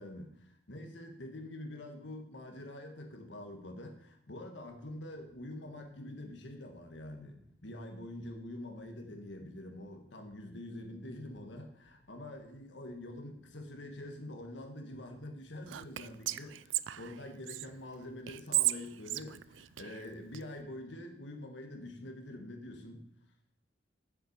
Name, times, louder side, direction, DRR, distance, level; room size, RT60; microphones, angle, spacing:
voice 1, 0.0-23.1, left 1 dB, 75° left, 4 dB, 1.6 m, -46 dB
sound 1, 4.6-21.0, equal, 5° left, 1.7 m, -69 dB
Whispering, 15.7-17.7 18.3-20.4, right 16 dB, 85° right, 0.3 m, -35 dB
7.8 x 7.0 x 6.7 m, 0.71 s
head